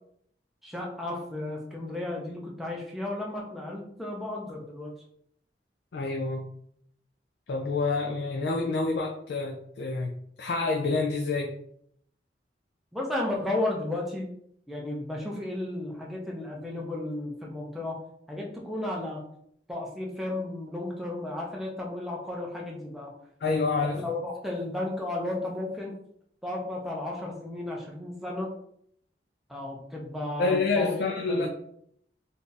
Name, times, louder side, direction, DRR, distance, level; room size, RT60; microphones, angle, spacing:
voice 1, 0.6-4.9 12.9-14.3 14.7-18.0 18.3-19.2 19.7-23.1 23.8-26.0 26.4-28.5 29.5-30.9 31.3-31.5, left 2 dB, ahead, -3 dB, 0.5 m, -33 dB
voice 2, 5.9-6.4 7.5-10.1 10.4-11.5 23.4-24.0 30.4-31.5, left 3 dB, 65° left, 1 dB, 0.4 m, -27 dB
2.7 x 2.3 x 3.8 m, 0.68 s
head